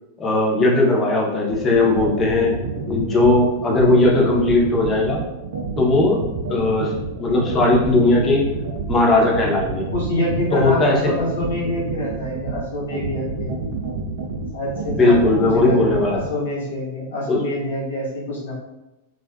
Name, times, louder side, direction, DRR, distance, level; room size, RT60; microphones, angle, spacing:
voice 1, 0.2-2.6 2.9-5.2 5.8-6.2 6.5-6.9 7.2-8.4 8.9-9.9 10.5-11.1 14.9-16.2 17.3-17.4, left 2 dB, 25° left, -2 dB, 0.6 m, -18 dB
sound 1, 1.5-16.2, right 4 dB, 65° right, 0.5 m, -28 dB
voice 2, 9.9-13.5 14.5-18.5, left 1 dB, 70° left, -6 dB, 0.9 m, -26 dB
2.4 x 2.3 x 2.2 m, 0.98 s
figure-of-eight pair, 95°, 0 cm